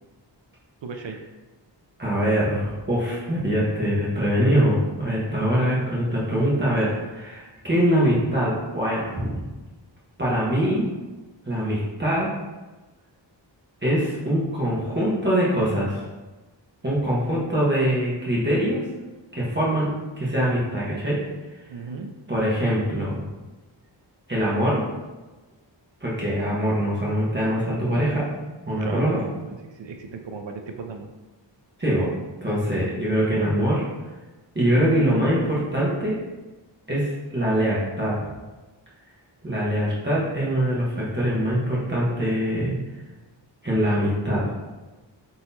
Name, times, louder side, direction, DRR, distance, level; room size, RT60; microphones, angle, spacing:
voice 1, 0.8-1.2 21.7-22.1 28.8-31.1, right 4 dB, 70° right, 4 dB, 0.6 m, -36 dB
voice 2, 2.0-9.3 10.2-10.9 11.5-12.3 13.8-16.0 16.8-18.8 19.3-19.9 20.2-21.2 22.3-23.2 24.3-24.8 26.0-28.2 28.6-29.2 31.8-32.1 32.4-33.8 34.5-36.2 36.9-38.2 39.4-42.7 43.6-44.4, equal, 25° right, -7 dB, 1.1 m, -23 dB
3.9 x 2.9 x 4.0 m, 1.2 s
wide cardioid pair, 105°, 46 cm